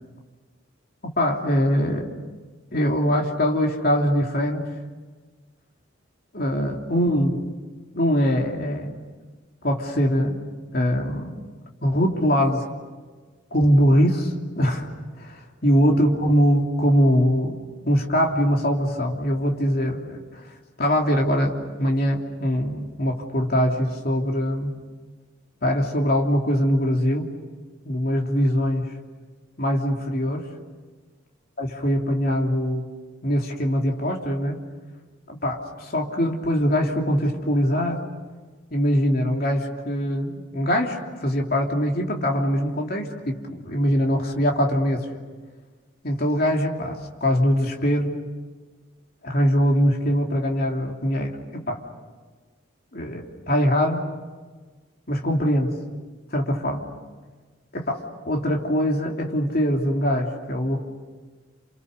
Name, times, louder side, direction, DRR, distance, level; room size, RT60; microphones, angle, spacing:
voice 1, 1.2-2.1 2.7-4.6 6.3-7.4 7.9-9.0 9.6-10.4 10.7-11.3 11.8-12.7 13.5-14.9 15.2-17.6 17.9-20.2 20.8-24.7 25.6-27.3 27.8-28.9 29.6-30.5 31.6-32.9 33.2-34.6 35.3-38.0 38.7-45.1 46.0-48.1 49.2-51.8 52.9-54.0 55.1-55.8 56.3-56.8 57.7-60.8, equal, 45° left, 0 dB, 3.1 m, -22 dB
30.0 x 29.0 x 6.8 m, 1.4 s
head